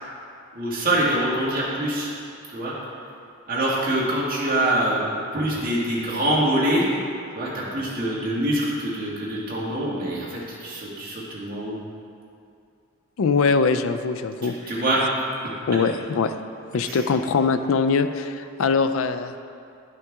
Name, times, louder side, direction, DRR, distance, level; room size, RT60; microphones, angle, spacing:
voice 1, 0.5-2.1 2.5-2.7 3.5-6.8 7.3-11.8 14.4-15.1 16.8-17.1, right 1 dB, 45° right, -6 dB, 1.9 m, -25 dB
voice 2, 13.2-14.5 15.7-16.3 16.7-19.3, left 5 dB, 85° left, 10 dB, 0.4 m, -22 dB
11.0 x 5.7 x 3.5 m, 2.5 s
head